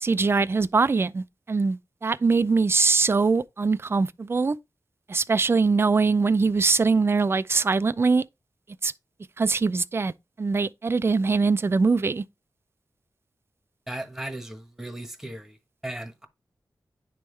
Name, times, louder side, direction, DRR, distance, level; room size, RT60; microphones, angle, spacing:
voice 1, 0.0-4.6 5.1-8.2 8.8-8.9 9.4-12.2, right 4 dB, 35° right, 0.3 m, -22 dB
voice 2, 13.9-15.6 15.8-16.3, right 1 dB, 5° right, 1.1 m, -36 dB
10.0 x 3.5 x 3.1 m
wide cardioid pair, 95°, 7 cm